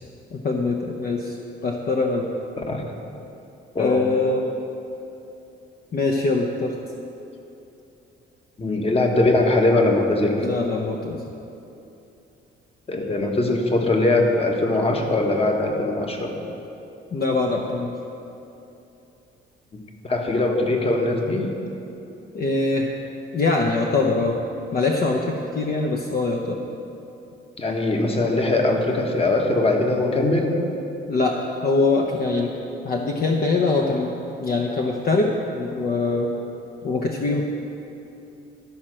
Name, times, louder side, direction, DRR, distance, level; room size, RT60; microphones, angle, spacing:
voice 1, 0.3-1.4 1.6-2.3 3.8-4.4 5.9-6.7 10.4-11.2 17.1-17.9 22.3-22.9 23.3-24.4 24.7-26.6 31.1-31.4 31.6-32.5 32.8-34.1 34.4-36.3 36.8-37.4, left 3 dB, 50° left, 0 dB, 0.8 m, -23 dB
voice 2, 8.6-10.5 12.9-16.4 19.7-21.5 27.6-30.6, left 2 dB, 30° left, 2 dB, 1.3 m, -21 dB
13.0 x 4.4 x 6.3 m, 2.8 s
cardioid pair, 90°, 20 cm